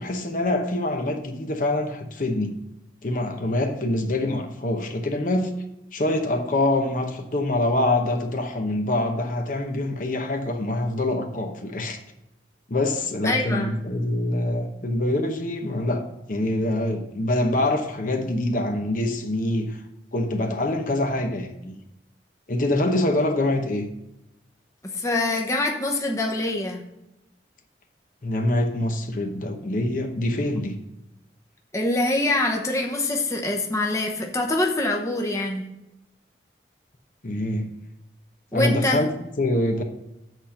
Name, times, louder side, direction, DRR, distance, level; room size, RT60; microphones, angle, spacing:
voice 1, 0.0-2.6 3.0-5.5 5.9-12.0 12.7-19.8 20.1-21.8 22.5-23.9 28.2-30.8 37.2-37.7 38.5-39.1 39.4-39.8, left 1 dB, 50° left, 0.8 m, -25 dB
voice 2, 13.2-13.7 24.9-26.8 31.7-35.7 38.5-39.0, left 2 dB, 15° left, 0.9 m, -24 dB
8.0 x 4.3 x 6.5 m
head